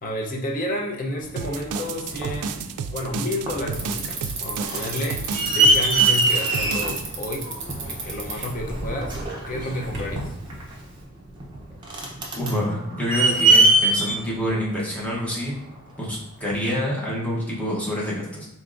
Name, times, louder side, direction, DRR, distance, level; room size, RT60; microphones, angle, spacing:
voice 1, 0.0-2.6 2.9-7.5 7.8-9.2 9.5-10.3, left 1 dB, 35° left, 0 dB, 0.6 m, -30 dB
sound 1, 1.2-2.4 3.0-3.2 3.4-4.0 4.3-15.7 16.5-16.6, right 2 dB, 20° right, 0.6 m, -23 dB
sound 2, 1.4-7.0, right 6 dB, 90° right, 0.3 m, -31 dB
Bicycle, 3.7-11.0, right 3 dB, 55° right, 0.9 m, -36 dB
voice 2, 12.4-15.5 16.0-18.5, equal, 5° left, -5 dB, 0.9 m, -27 dB
4.1 x 3.5 x 2.5 m, 0.83 s
head